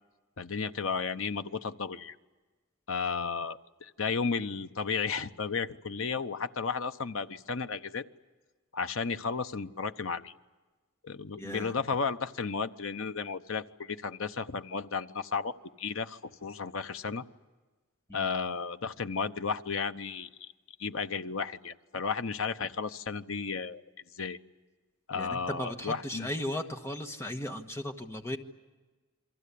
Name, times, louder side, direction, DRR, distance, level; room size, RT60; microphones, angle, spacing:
voice 1, 0.4-2.2 2.9-8.0 8.7-10.3 11.0-17.2 18.1-20.5 20.8-23.8 24.1-24.4 25.1-26.3, left 5 dB, 75° left, 10 dB, 0.9 m, -33 dB
voice 2, 11.4-11.8 18.1-18.3 25.2-28.4, left 1 dB, 15° left, 5 dB, 1.4 m, -36 dB
28.5 x 23.0 x 8.5 m, 1.3 s
head